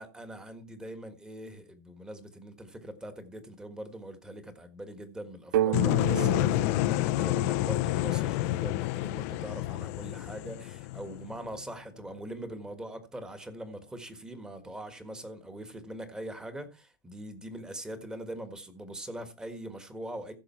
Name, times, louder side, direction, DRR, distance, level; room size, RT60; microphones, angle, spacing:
voice 1, 0.0-20.3, right 1 dB, 5° right, 1.6 m, -42 dB
sound 1, 5.5-9.2, right 12 dB, 60° right, 0.5 m, -33 dB
sound 2, 5.7-11.6, left 19 dB, 45° left, 0.5 m, -29 dB
15.5 x 6.5 x 4.5 m
supercardioid pair, 150°, 11 cm